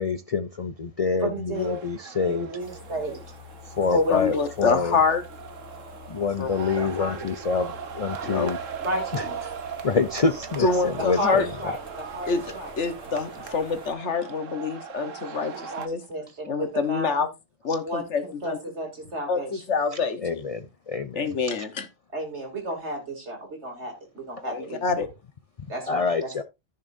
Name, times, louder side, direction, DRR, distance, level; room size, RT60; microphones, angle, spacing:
voice 1, 0.0-2.5 3.6-5.0 6.1-8.6 9.1-9.3 9.8-11.7 19.9-21.4 25.9-26.4, left 4 dB, 40° left, 0.5 m, -27 dB
voice 2, 1.2-1.8 2.2-3.2 3.9-4.2 8.8-9.4 11.0-11.3 11.6-12.7 15.0-15.1 15.5-15.8 16.1-17.2 17.8-18.0 18.4-19.6 22.1-24.8 25.7-26.0, right 1 dB, 65° right, 3.2 m, -32 dB
sound 1, 1.5-15.9, right 7 dB, 90° right, 1.4 m, -39 dB
sound 2, 2.6-13.9, left 4 dB, 20° right, 3.2 m, -47 dB
voice 3, 4.1-5.2 6.4-6.5 6.8-7.1 8.2-8.5 10.6-11.5 12.3-12.4 12.8-16.0 16.5-17.3 17.6-18.6 19.3-20.4 21.2-21.9 24.5-25.1, left 5 dB, 70° left, 1.5 m, -26 dB
14.5 x 6.7 x 2.6 m
omnidirectional pair, 1.3 m